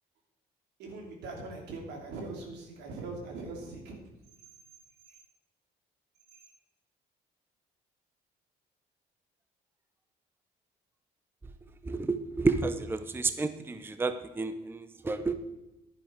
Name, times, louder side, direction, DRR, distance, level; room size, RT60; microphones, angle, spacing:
voice 1, 0.8-4.0 5.1-5.2 6.3-6.4, right 3 dB, 85° right, 1 dB, 2.9 m, -41 dB
voice 2, 11.8-15.3, right 3 dB, 15° right, 10 dB, 0.6 m, -30 dB
11.0 x 9.9 x 4.5 m, 0.99 s
cardioid pair, 110°, 17 cm